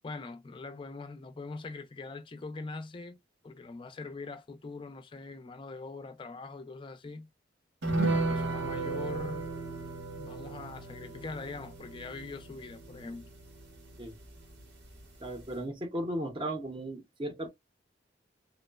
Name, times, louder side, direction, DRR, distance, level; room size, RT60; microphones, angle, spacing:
voice 1, 0.0-3.2 3.4-7.3 8.0-9.5 10.2-13.3, left 3 dB, 30° left, 0.4 m, -42 dB
sound 1, 7.8-14.6 14.9-15.0 15.4-15.5, right 2 dB, 85° right, 1.0 m, -35 dB
voice 2, 15.2-17.5, right 1 dB, 30° right, 0.6 m, -36 dB
3.0 x 2.0 x 2.2 m
head